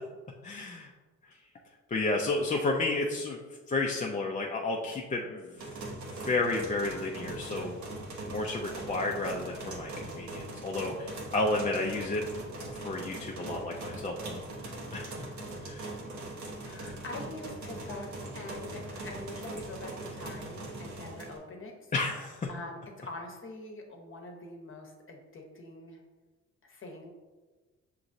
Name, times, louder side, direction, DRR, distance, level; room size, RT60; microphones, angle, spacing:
voice 1, 0.4-0.9 1.9-3.4 3.7-5.5 5.9-7.8 8.3-12.2 12.7-14.4 14.9-15.1 15.6-16.0 21.9-22.5, left 2 dB, 25° left, -1 dB, 0.5 m, -32 dB
sound 1, 5.6-21.4, right 2 dB, 70° right, 1.0 m, -41 dB
voice 2, 16.6-21.7 22.5-26.0 26.6-27.1, left 2 dB, 45° left, 2 dB, 0.9 m, -44 dB
6.1 x 3.0 x 2.6 m, 1.3 s
cardioid pair, 90°, 30 cm